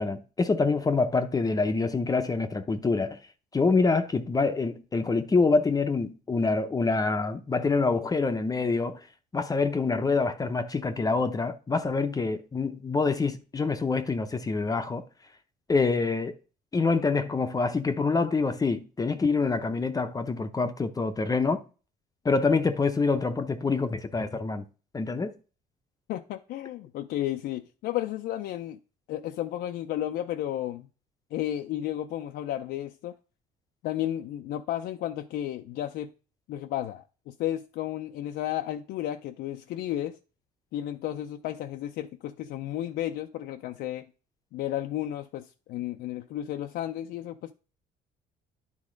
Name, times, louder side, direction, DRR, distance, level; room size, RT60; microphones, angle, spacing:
voice 1, 0.0-3.2 3.5-9.1 9.3-15.0 15.7-16.3 16.7-21.6 22.2-24.6 24.9-25.3, left 4 dB, 20° left, 0.6 m, -26 dB
voice 2, 26.1-28.8 29.1-30.9 31.3-33.1 33.8-36.1 36.5-40.2 40.7-44.1 44.5-47.5, left 12 dB, 75° left, 0.5 m, -33 dB
9.8 x 3.5 x 5.1 m
cardioid pair, 110°, 17 cm